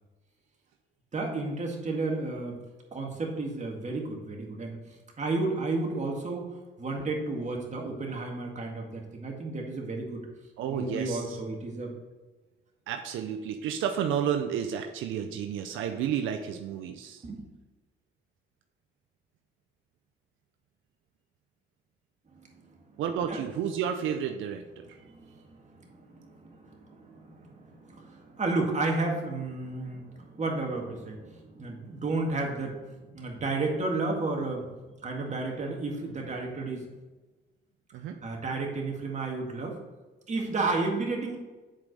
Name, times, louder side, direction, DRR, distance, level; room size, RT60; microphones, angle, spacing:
voice 1, 1.1-2.6 2.9-4.8 5.2-10.3 10.7-11.9 17.2-17.5 22.4-23.0 23.3-23.4 24.9-34.7 35.0-36.9 38.2-39.8 40.3-41.4, right 3 dB, 35° right, 1 dB, 1.9 m, -32 dB
voice 2, 10.6-11.4 12.9-17.2 23.0-25.0 37.9-38.2, right 8 dB, 85° right, 5 dB, 0.6 m, -31 dB
7.4 x 4.9 x 5.3 m, 1.2 s
cardioid pair, 90°, 20 cm